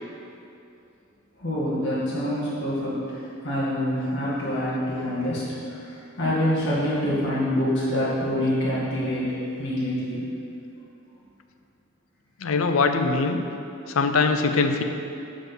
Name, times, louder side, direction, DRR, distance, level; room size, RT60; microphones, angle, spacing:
voice 1, 1.4-10.3, equal, 60° left, -10 dB, 2.1 m, -26 dB
voice 2, 12.4-13.4 13.9-14.8, left 4 dB, 80° left, 7 dB, 0.6 m, -22 dB
7.8 x 5.0 x 6.2 m, 2.6 s
head